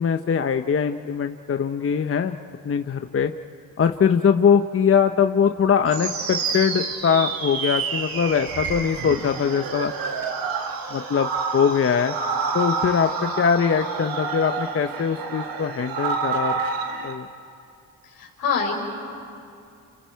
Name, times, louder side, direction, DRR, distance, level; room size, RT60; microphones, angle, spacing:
voice 1, 0.0-2.4 2.6-3.3 3.8-9.9 10.9-12.1 12.5-16.6 17.0-17.3, left 7 dB, 40° left, 7 dB, 0.8 m, -22 dB
sound 1, 5.9-17.1, right 5 dB, 80° right, 2.0 m, -28 dB
voice 2, 18.0-18.7, left 6 dB, 80° left, 0 dB, 4.9 m, -25 dB
29.5 x 29.5 x 4.7 m, 2.6 s
cardioid pair, 75°, 35 cm